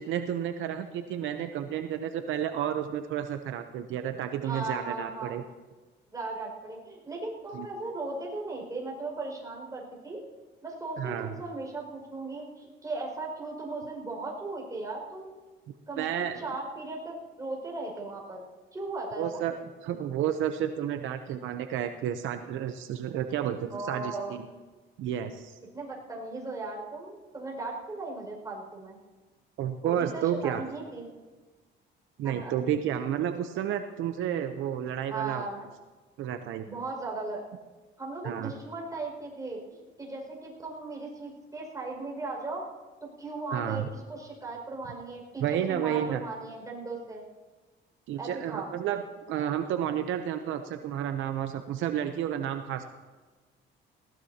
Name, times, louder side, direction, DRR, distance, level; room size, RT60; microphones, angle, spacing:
voice 1, 0.0-5.4 7.5-7.7 11.0-11.3 16.0-16.4 19.2-19.5 19.8-24.5 25.0-25.5 29.6-30.6 32.2-35.5 36.2-36.7 38.2-38.5 43.5-43.8 45.4-46.2 48.1-49.0 49.3-52.9, right 10 dB, 75° right, 7 dB, 0.8 m, -31 dB
voice 2, 4.4-5.3 6.1-10.2 10.6-15.3 15.9-19.4 23.7-24.3 25.7-29.0 29.8-31.1 32.2-32.6 35.1-35.7 36.7-37.4 38.0-42.6 43.0-47.2 48.2-48.7, right 3 dB, 15° right, -2 dB, 5.8 m, -37 dB
19.5 x 17.5 x 2.9 m, 1.3 s
cardioid pair, 115°, 20 cm